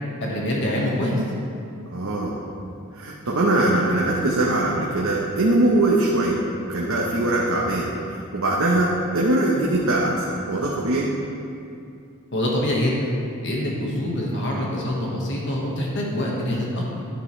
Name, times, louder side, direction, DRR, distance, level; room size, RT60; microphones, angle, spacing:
voice 1, 0.2-1.2 12.3-13.0 13.4-17.1, left 1 dB, 55° left, -3 dB, 1.6 m, -25 dB
voice 2, 1.9-2.4 2.9-6.4 6.7-11.1, right 2 dB, 65° right, -3 dB, 1.1 m, -22 dB
11.0 x 10.5 x 3.3 m, 2.5 s
head